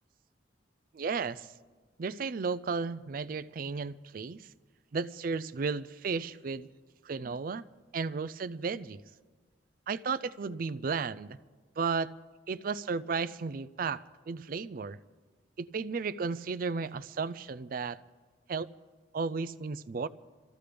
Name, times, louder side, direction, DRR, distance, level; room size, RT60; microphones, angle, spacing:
voice 1, 0.9-1.5 2.0-4.5 4.9-6.7 7.0-7.6 7.9-9.0 9.9-11.4 11.8-12.1 12.5-15.0 15.6-18.0 18.5-18.7 19.1-20.1, right 5 dB, 50° right, 15 dB, 0.4 m, -34 dB
25.0 x 14.0 x 3.4 m, 1.4 s
head